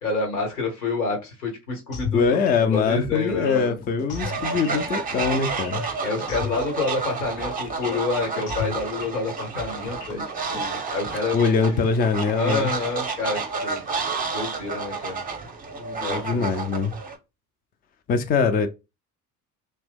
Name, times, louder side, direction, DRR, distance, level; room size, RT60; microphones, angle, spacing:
voice 1, 0.0-2.4 2.7-3.8 6.0-10.2 10.5-11.5 12.4-13.8 14.3-15.2 16.0-16.4, left 3 dB, 85° left, 1.1 m, -28 dB
sound 1, 1.9-10.6, left 7 dB, 60° left, 0.8 m, -35 dB
voice 2, 2.1-5.9 11.3-12.7 15.8-17.0 18.1-18.7, left 5 dB, 20° left, 0.4 m, -23 dB
Fowl, 4.1-17.2, right 4 dB, 20° right, 0.6 m, -31 dB
2.7 x 2.1 x 3.4 m
figure-of-eight pair, 60°, 44 cm